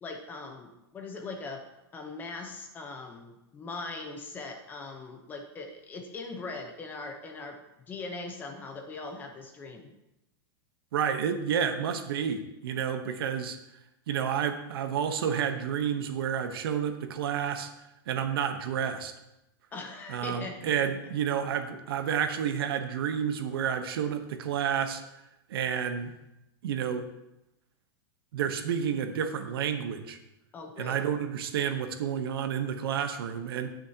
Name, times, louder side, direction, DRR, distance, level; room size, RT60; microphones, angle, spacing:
voice 1, 0.0-1.7 1.9-9.9 19.7-20.7 30.5-31.0, left 3 dB, 15° left, 4 dB, 0.8 m, -40 dB
voice 2, 10.9-13.6 14.1-17.7 18.1-19.1 20.1-25.0 25.5-26.1 26.6-27.0 28.3-30.2 30.8-33.7, right 8 dB, 70° right, 8 dB, 1.0 m, -30 dB
18.5 x 6.4 x 2.8 m, 0.90 s
supercardioid pair, 170°, 13 cm